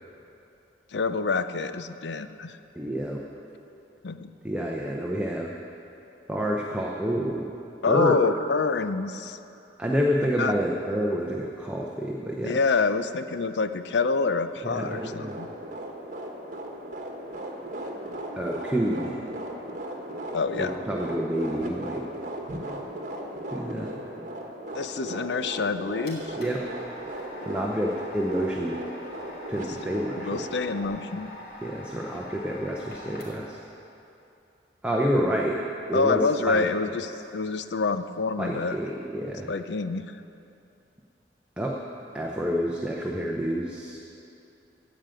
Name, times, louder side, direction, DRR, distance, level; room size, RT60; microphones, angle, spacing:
voice 1, 0.9-2.6 4.0-4.3 7.8-9.4 10.4-10.5 12.4-15.5 20.3-20.7 24.7-26.4 30.2-31.3 35.9-38.8 39.5-40.1, left 4 dB, 75° left, 11 dB, 0.5 m, -27 dB
voice 2, 2.7-3.2 4.4-5.5 6.3-7.5 7.9-8.2 9.8-12.6 14.6-15.4 18.4-19.2 20.6-22.0 23.5-24.0 26.4-26.6 27.4-28.8 29.5-30.4 31.6-33.6 34.8-35.6 35.9-36.6 38.4-39.5 41.6-41.8 42.1-44.0, equal, 5° right, -2 dB, 0.8 m, -28 dB
sound 1, 14.7-30.9, right 1 dB, 45° right, 1.3 m, -37 dB
sound 2, 25.5-33.6, left 1 dB, 55° left, 3.0 m, -44 dB
15.5 x 5.2 x 9.0 m, 2.8 s
head